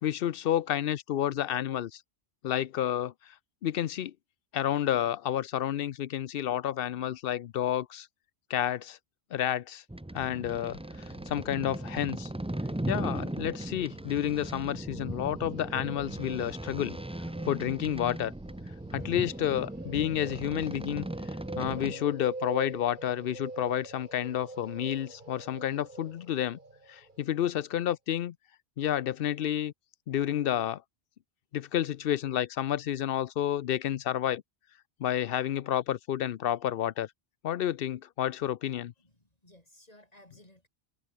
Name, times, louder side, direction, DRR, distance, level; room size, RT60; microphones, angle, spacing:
voice 1, 0.0-2.0 2.4-3.3 3.6-4.1 4.5-8.1 8.5-9.0 9.3-9.8 10.1-10.8 11.3-12.3 12.9-17.0 17.4-18.3 18.9-21.1 21.6-26.6 26.9-28.3 28.8-29.7 30.1-30.8 31.5-34.4 35.0-37.1 37.4-38.9, left 11 dB, 70° left, 0.7 m, -30 dB
sound 1, 9.9-21.9, right 1 dB, 5° right, 0.6 m, -38 dB
sound 2, 10.3-27.2, right 2 dB, 50° right, 2.9 m, -46 dB
voice 2, 39.0-40.7, left 1 dB, 35° left, 5.0 m, -58 dB
omnidirectional pair, 1.1 m